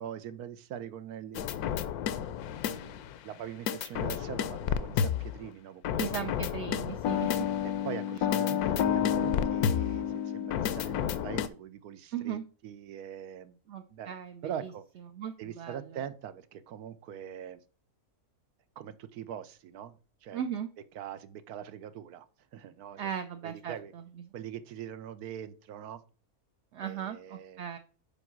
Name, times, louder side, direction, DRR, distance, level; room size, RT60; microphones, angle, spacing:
voice 1, 0.0-1.8 2.7-6.0 7.6-13.6 13.9-14.1 14.4-14.8 15.4-17.6 18.8-20.0 20.2-20.4 20.9-22.3 22.5-23.1 23.4-23.9 24.3-26.0 26.8-27.6, right 9 dB, 85° right, 12 dB, 1.1 m, -42 dB
sound 1, 1.4-3.1 3.7-5.4 5.8-11.5, left 9 dB, 80° left, 1.1 m, -30 dB
voice 2, 6.0-7.3 12.1-12.4 13.7-14.7 15.1-15.9 20.3-20.7 23.0-24.0 26.7-27.8, right 9 dB, 65° right, 7 dB, 0.7 m, -37 dB
5.4 x 4.8 x 5.9 m, 0.38 s
omnidirectional pair, 1.6 m